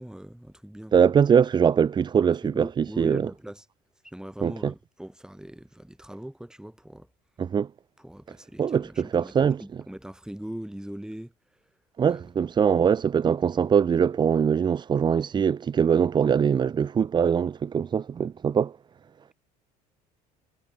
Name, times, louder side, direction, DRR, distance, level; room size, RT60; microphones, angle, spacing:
voice 1, 0.0-1.1 2.2-3.7 4.0-7.1 8.0-11.3 12.1-12.2, right 1 dB, 5° right, 3.5 m, -40 dB
voice 2, 0.9-3.2 4.4-4.7 7.4-7.7 8.6-9.6 12.0-18.7, right 7 dB, 25° right, 0.4 m, -22 dB
hypercardioid pair, 65°, 19 cm